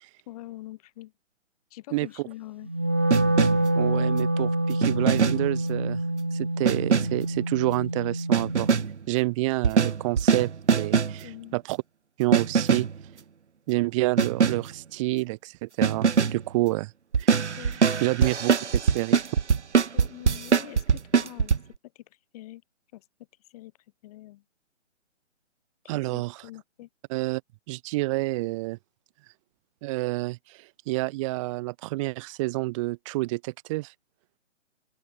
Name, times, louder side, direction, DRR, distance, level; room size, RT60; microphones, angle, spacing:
voice 1, 0.3-1.1 1.7-2.7 11.2-11.6 17.6-18.0 19.9-21.6 22.0-22.1 22.3-22.6 22.9-23.1 23.4-23.7 24.0-24.4 25.9-26.9, left 16 dB, 30° left, 5.3 m, -44 dB
Wind instrument woodwind instrument, 2.6-8.9, right 1 dB, 10° right, 0.4 m, -26 dB
sound 1, 3.1-3.8 4.8-5.6 6.6-7.3 8.3-9.0 9.6-11.2 12.3-13.0 14.2-14.7 15.8-16.4 17.1-21.6, right 6 dB, 65° right, 2.4 m, -23 dB
voice 2, 3.7-6.0 6.3-8.7 9.1-10.5 10.8-11.8 12.2-12.9 13.7-16.9 17.2-17.3 18.0-19.2 25.9-26.4 27.1-27.4 27.7-28.8 29.8-33.9, right 21 dB, 25° right, 2.9 m, -28 dB
open air
figure-of-eight pair, 140°, 37 cm